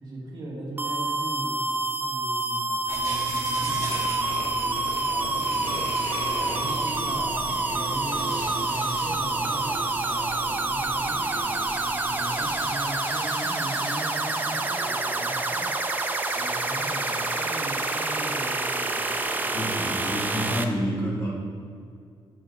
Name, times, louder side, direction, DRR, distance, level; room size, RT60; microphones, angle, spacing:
voice 1, 0.0-1.7 2.0-6.0 6.3-11.3 11.8-15.7 16.3-19.9, right 1 dB, 55° right, -6 dB, 2.2 m, -39 dB
sound 1, 0.8-20.6, right 2 dB, 20° right, 0.4 m, -27 dB
sound 2, 2.9-12.7, right 2 dB, 35° right, 1.3 m, -37 dB
sound 3, 3.8-19.2, left 2 dB, 75° left, 1.9 m, -42 dB
voice 2, 19.5-21.3, equal, 35° left, -6 dB, 2.2 m, -28 dB
12.5 x 7.6 x 2.6 m, 2.2 s
wide cardioid pair, 180°, 10 cm